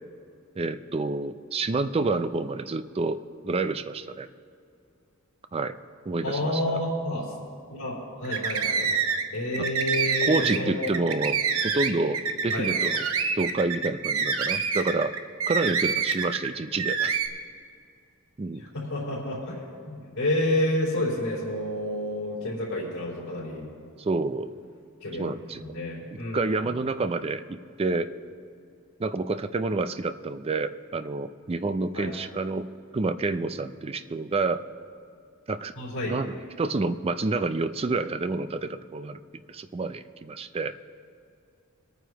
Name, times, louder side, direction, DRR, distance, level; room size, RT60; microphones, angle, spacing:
voice 1, 0.6-4.3 5.5-5.8 6.1-6.8 9.6-9.7 10.2-13.1 13.3-15.1 15.5-17.2 18.4-18.6 24.0-24.5 25.2-25.7 26.3-28.1 29.0-32.7 32.9-34.6 35.5-35.7 36.1-39.2 39.5-40.7, right 3 dB, 25° right, 11 dB, 0.4 m, -28 dB
voice 2, 6.2-7.3 7.7-8.9 9.3-10.9 12.5-12.7 18.6-19.6 19.9-23.7 25.0-25.2 25.5-26.4 31.9-32.1 35.8-36.2, left 1 dB, 90° left, -9 dB, 3.5 m, -29 dB
sound 1, 8.2-9.3 9.5-16.5 16.8-17.3, right 6 dB, 70° right, 0.8 m, -26 dB
23.5 x 9.4 x 3.0 m, 2.5 s
head